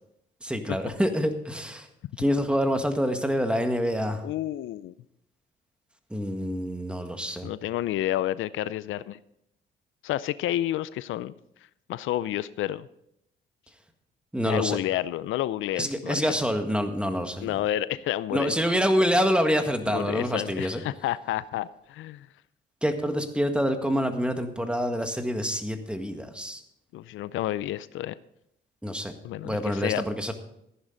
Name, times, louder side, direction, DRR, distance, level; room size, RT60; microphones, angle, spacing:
voice 1, 0.4-1.9 2.2-4.2 6.1-7.5 14.3-14.8 15.7-17.6 18.3-20.8 22.8-26.6 28.8-29.1 29.4-30.3, equal, 5° right, 6 dB, 1.7 m, -26 dB
voice 2, 4.2-4.9 7.4-9.2 10.0-11.3 11.9-12.9 14.4-16.4 17.4-18.5 19.9-22.3 26.9-28.1 29.2-30.0, left 13 dB, 80° left, 17 dB, 0.5 m, -30 dB
14.5 x 10.5 x 3.9 m, 0.77 s
cardioid pair, 90°, 20 cm